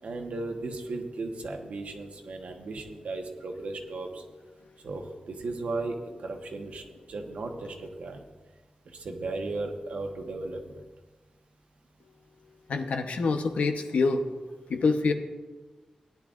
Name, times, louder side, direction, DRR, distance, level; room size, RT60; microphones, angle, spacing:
voice 1, 0.0-4.2 4.8-8.2 8.8-10.8, right 3 dB, 75° right, 3 dB, 1.3 m, -36 dB
voice 2, 12.7-14.2 14.7-15.1, left 4 dB, 80° left, 5 dB, 1.0 m, -26 dB
18.0 x 10.5 x 2.6 m, 1.3 s
wide cardioid pair, 135°, 2 cm